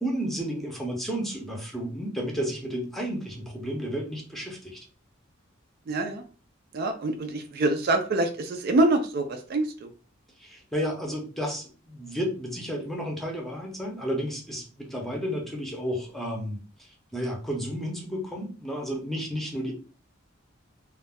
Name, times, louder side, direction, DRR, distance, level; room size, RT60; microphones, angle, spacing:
voice 1, 0.0-4.9 10.4-19.7, equal, ahead, 0 dB, 0.6 m, -32 dB
voice 2, 5.9-6.2 6.7-9.9, right 2 dB, 50° right, 6 dB, 0.3 m, -25 dB
2.3 x 2.0 x 3.4 m, 0.37 s
head